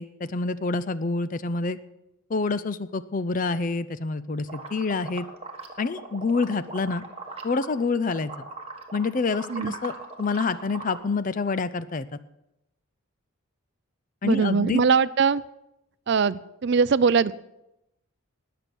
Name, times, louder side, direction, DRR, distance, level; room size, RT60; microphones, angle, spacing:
voice 1, 0.0-1.8 2.3-5.3 5.8-7.0 7.4-8.3 8.9-9.9 10.2-12.1 14.2-14.8, left 4 dB, 35° left, 13 dB, 0.5 m, -27 dB
sound 1, 4.5-7.8 8.1-11.0, right 3 dB, 25° right, 1.6 m, -39 dB
voice 2, 14.2-15.4 16.1-17.3, right 5 dB, 50° right, 18 dB, 0.4 m, -21 dB
20.0 x 6.9 x 6.2 m, 0.86 s
head